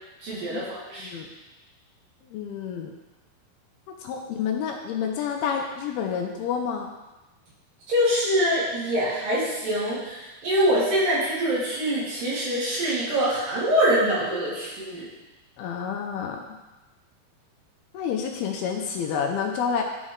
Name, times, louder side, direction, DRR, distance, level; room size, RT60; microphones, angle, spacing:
voice 1, 0.2-1.1 7.9-15.1, equal, 60° right, -8 dB, 3.7 m, -24 dB
voice 2, 0.9-1.3 2.3-2.9 3.9-6.9 15.6-16.6 17.9-19.8, left 7 dB, 80° left, 2 dB, 2.4 m, -29 dB
12.0 x 4.1 x 3.6 m, 1.1 s
omnidirectional pair, 4.6 m